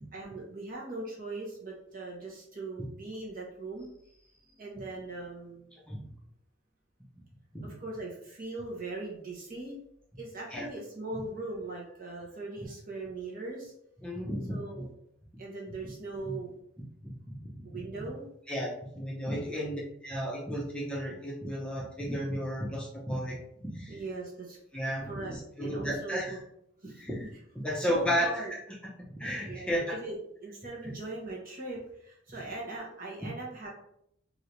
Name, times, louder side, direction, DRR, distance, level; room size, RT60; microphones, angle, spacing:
voice 1, 0.1-3.9 4.5-5.7 7.6-9.7 10.2-13.7 14.5-14.9 15.4-16.5 17.6-18.3 19.5-19.6 23.9-24.6 25.1-25.3 25.6-26.4 26.8-27.0 27.6-28.5 29.4-30.1 30.4-33.7, right 2 dB, 50° right, -3 dB, 1.1 m, -40 dB
voice 2, 14.0-14.6 16.2-16.3 17.0-17.7 18.5-24.0 24.7-26.4 27.0-27.3 27.6-28.6 29.1-30.0, equal, 5° left, -5 dB, 0.6 m, -33 dB
3.2 x 2.7 x 2.9 m, 0.72 s
head